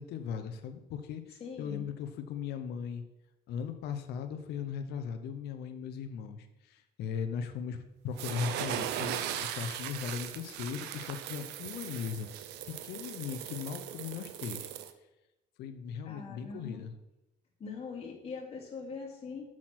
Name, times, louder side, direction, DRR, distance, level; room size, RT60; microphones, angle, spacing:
voice 1, 0.0-3.0 3.5-14.7 15.6-16.9, left 7 dB, 75° left, 7 dB, 0.8 m, -38 dB
voice 2, 1.4-1.9 16.0-16.8 17.6-19.5, left 4 dB, 35° left, -3 dB, 2.8 m, -42 dB
sound 1, 8.2-14.9, right 11 dB, 90° right, 0.6 m, -38 dB
6.4 x 6.0 x 5.9 m, 0.95 s
cardioid pair, 110°, 17 cm